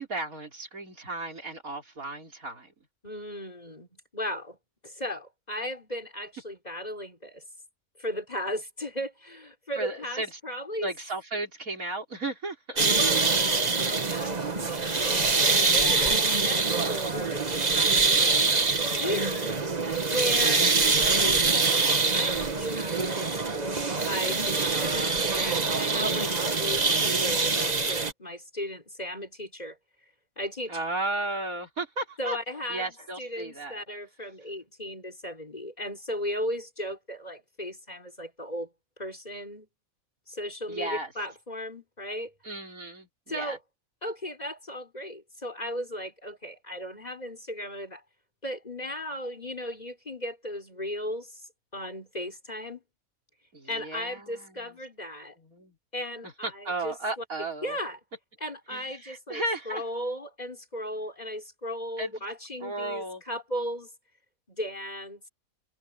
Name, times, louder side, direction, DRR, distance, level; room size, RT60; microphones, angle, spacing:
voice 1, 0.0-2.7 9.7-10.4 10.8-12.8 25.3-25.6 30.7-32.4 32.7-33.8 40.7-41.1 42.4-43.6 53.5-54.8 55.4-55.8 56.2-57.8 58.7-59.8 62.0-62.1 62.6-63.2, right 2 dB, 75° right, 4.5 m, -35 dB
voice 2, 3.0-4.6 4.8-7.4 8.0-10.9 13.0-19.6 20.1-21.4 21.7-23.7 24.1-29.8 30.4-30.7 32.2-38.7 39.0-39.7 40.3-42.3 43.3-43.6 44.0-48.0 48.4-51.4 51.7-52.8 53.7-55.3 55.9-57.2 57.6-58.0 58.4-63.9 64.5-65.2, equal, 30° left, 4.3 m, -36 dB
sound 1, 12.8-28.1, right 4 dB, 30° right, 1.4 m, -24 dB
omnidirectional pair, 1.5 m